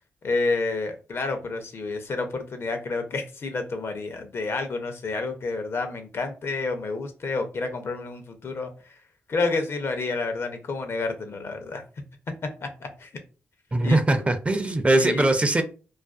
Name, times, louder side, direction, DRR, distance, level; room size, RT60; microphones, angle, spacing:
voice 1, 0.2-8.9 9.3-11.8 12.6-13.1 13.8-14.3 14.9-15.3, left 3 dB, 60° left, 0.6 m, -29 dB
voice 2, 13.7-15.6, right 2 dB, 25° right, 0.5 m, -21 dB
2.4 x 2.3 x 2.3 m
cardioid pair, 55°, 5 cm